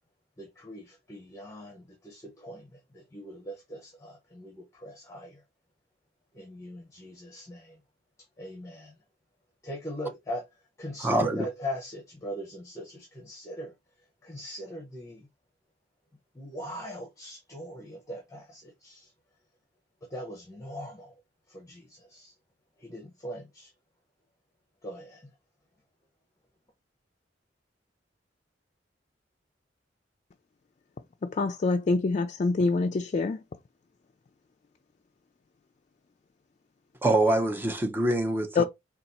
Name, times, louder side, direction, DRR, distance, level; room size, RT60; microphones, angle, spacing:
voice 1, 0.4-5.4 6.3-7.8 8.4-9.0 9.6-13.7 14.2-15.3 16.3-19.1 20.0-21.2 21.5-22.3 22.8-23.7 24.8-25.3, equal, 20° left, 0.8 m, -41 dB
voice 2, 11.0-11.4 37.0-38.6, right 1 dB, 10° right, 0.6 m, -25 dB
voice 3, 31.2-33.4 38.6-38.7, left 3 dB, 40° left, 0.3 m, -25 dB
4.0 x 2.4 x 4.1 m
head